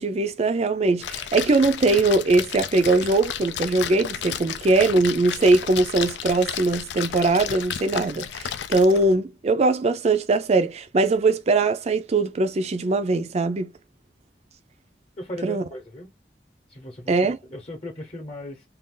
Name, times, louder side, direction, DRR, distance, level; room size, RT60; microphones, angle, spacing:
voice 1, 0.0-13.7 15.4-15.6 17.1-17.4, right 3 dB, 35° right, 0.4 m, -21 dB
Splash splatter, 1.0-9.1, left 9 dB, 75° left, 0.4 m, -33 dB
voice 2, 15.2-16.1 16.7-17.1 17.5-18.6, left 1 dB, 35° left, 0.9 m, -37 dB
2.6 x 2.4 x 3.6 m
head